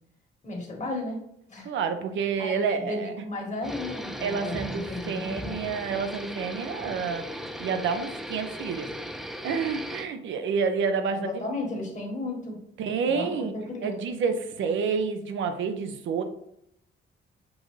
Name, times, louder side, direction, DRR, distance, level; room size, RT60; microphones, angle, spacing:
voice 1, 0.4-1.2 1.5-1.7 2.4-5.6 11.1-12.6 13.1-14.0, left 2 dB, 35° left, 1 dB, 1.6 m, -34 dB
voice 2, 1.6-3.1 4.2-8.9 9.4-11.4 12.8-13.5 13.8-16.2, right 5 dB, 75° right, 8 dB, 0.7 m, -29 dB
sound 1, 3.6-10.1, equal, ahead, 0.4 m, -37 dB
6.1 x 2.6 x 3.2 m, 0.76 s
cardioid pair, 90°, 20 cm